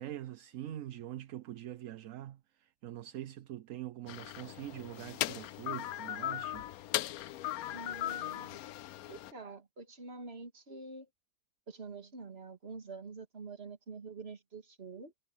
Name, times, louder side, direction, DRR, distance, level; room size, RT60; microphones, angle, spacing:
voice 1, 0.0-6.7, right 13 dB, 65° right, 1.0 m, -44 dB
sound 1, 4.1-9.3, left 13 dB, 80° left, 1.1 m, -38 dB
voice 2, 7.7-8.6 9.1-11.1 11.7-15.1, right 4 dB, 45° right, 2.2 m, -46 dB
omnidirectional pair, 1.6 m